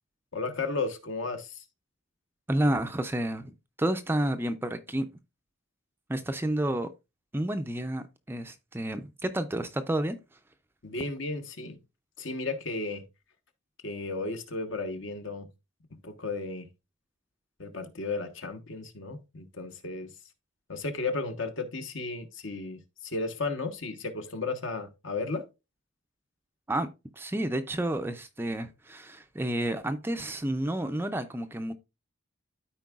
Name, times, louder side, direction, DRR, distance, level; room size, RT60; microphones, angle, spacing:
voice 1, 0.3-1.6 10.8-11.8 12.2-13.0 13.8-15.5 16.0-16.7 17.6-20.1 20.7-25.5, left 3 dB, 60° left, 1.0 m, -34 dB
voice 2, 2.5-5.1 6.1-6.9 7.3-10.2 26.7-26.9 27.2-31.7, right 1 dB, 10° right, 0.4 m, -30 dB
13.0 x 4.5 x 2.4 m
head